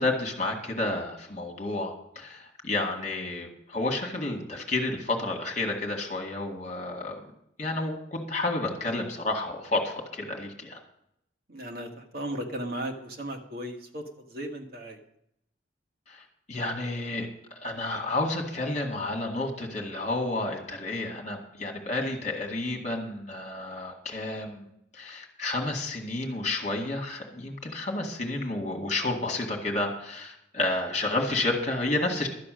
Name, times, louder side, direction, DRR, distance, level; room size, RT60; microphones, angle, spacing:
voice 1, 0.0-7.3 7.6-10.8 16.1-17.3 17.6-24.7 24.9-32.3, left 2 dB, 35° left, 2 dB, 2.0 m, -30 dB
voice 2, 11.5-15.0, right 1 dB, 50° right, 3 dB, 1.5 m, -36 dB
12.5 x 8.6 x 6.4 m, 0.75 s
head